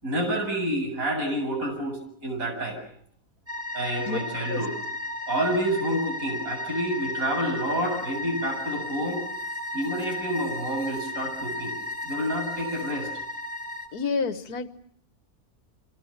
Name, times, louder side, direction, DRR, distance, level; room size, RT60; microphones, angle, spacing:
voice 1, 0.0-2.8 3.7-4.7 5.3-9.2 9.7-11.8 12.0-13.1, right 1 dB, 60° right, 3 dB, 8.6 m, -28 dB
sound 1, 3.5-13.9, left 1 dB, 15° right, 4.1 m, -34 dB
voice 2, 13.9-14.7, left 5 dB, 80° left, 12 dB, 1.8 m, -28 dB
29.5 x 25.0 x 7.3 m, 0.63 s
omnidirectional pair, 1.6 m